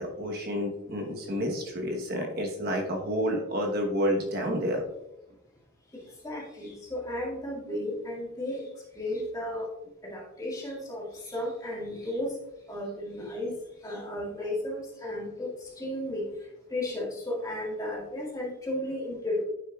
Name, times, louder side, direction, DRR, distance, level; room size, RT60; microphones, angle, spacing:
voice 1, 0.0-4.8, equal, 45° right, 1 dB, 1.1 m, -29 dB
voice 2, 6.2-8.6 9.0-9.7 10.0-12.4 12.7-13.5 13.8-16.2 16.7-19.4, left 1 dB, 15° left, -4 dB, 1.9 m, -34 dB
9.7 x 6.4 x 2.3 m, 0.90 s
head